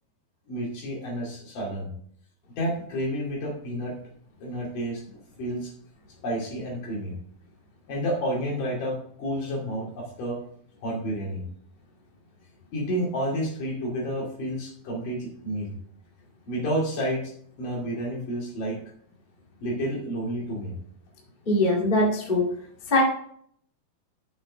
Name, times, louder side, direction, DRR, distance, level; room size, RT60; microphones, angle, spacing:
voice 1, 0.5-1.9 2.6-3.9 4.4-5.0 5.4-5.7 6.2-7.1 7.9-10.4 10.8-11.4 12.7-15.7 16.5-18.8 19.6-20.7, equal, 60° left, -2 dB, 4.0 m, -30 dB
voice 2, 21.4-22.5 22.9-23.0, left 2 dB, 20° left, -2 dB, 1.3 m, -21 dB
7.4 x 6.3 x 4.9 m, 0.63 s
omnidirectional pair, 4.3 m